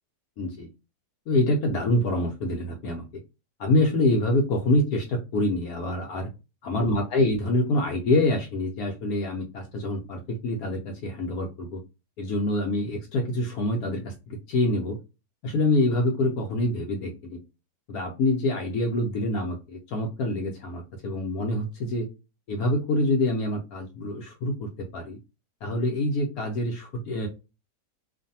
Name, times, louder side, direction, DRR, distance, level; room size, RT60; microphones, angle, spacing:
voice 1, 0.4-0.7 1.3-3.1 3.6-6.3 6.6-11.8 12.2-15.0 15.4-17.4 17.9-22.1 22.5-25.2 25.6-27.3, left 1 dB, 70° left, 2 dB, 0.9 m, -26 dB
2.5 x 2.5 x 2.6 m, 0.28 s
omnidirectional pair, 1.8 m